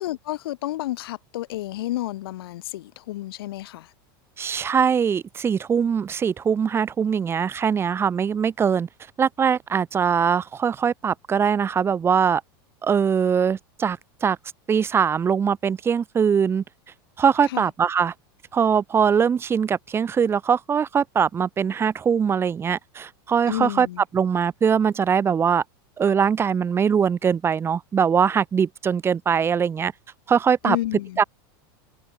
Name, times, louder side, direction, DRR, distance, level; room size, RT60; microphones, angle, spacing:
voice 1, 0.0-3.9 17.5-17.7 23.5-24.0 30.6-31.2, left 15 dB, 85° left, 1.0 m, -30 dB
voice 2, 4.4-8.9 9.2-12.4 12.8-14.4 14.7-16.6 17.2-18.1 18.5-23.9 24.1-25.6 26.0-29.9 30.3-30.8 31.2-31.3, right 7 dB, 20° right, 1.2 m, -22 dB
supercardioid pair, 135°, 12 cm